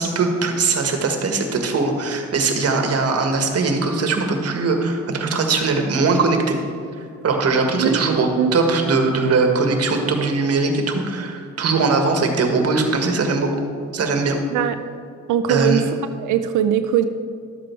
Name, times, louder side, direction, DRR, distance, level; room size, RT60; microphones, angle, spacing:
voice 1, 0.0-6.6 7.2-13.6 13.9-14.4 15.5-15.8, right 3 dB, 55° right, 4 dB, 1.7 m, -20 dB
voice 2, 15.3-15.9 16.2-17.1, right 10 dB, 80° right, 9 dB, 0.6 m, -20 dB
12.0 x 7.7 x 4.5 m, 2.4 s
cardioid pair, 90°, 30 cm